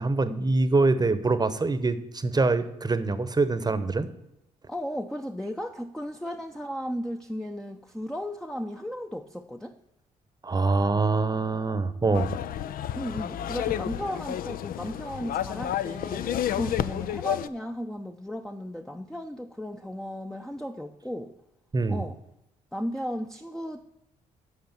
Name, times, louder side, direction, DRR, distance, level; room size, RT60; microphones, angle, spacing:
voice 1, 0.0-4.1 10.4-12.3 21.7-22.0, right 3 dB, 25° right, 12 dB, 0.9 m, -24 dB
voice 2, 4.7-9.7 12.9-21.3 21.9-22.2 22.7-23.8, equal, 5° left, 4 dB, 0.6 m, -35 dB
sound 1, 12.1-17.5, left 11 dB, 60° left, 0.4 m, -31 dB
8.0 x 5.1 x 6.9 m, 0.87 s
supercardioid pair, 55°, 16 cm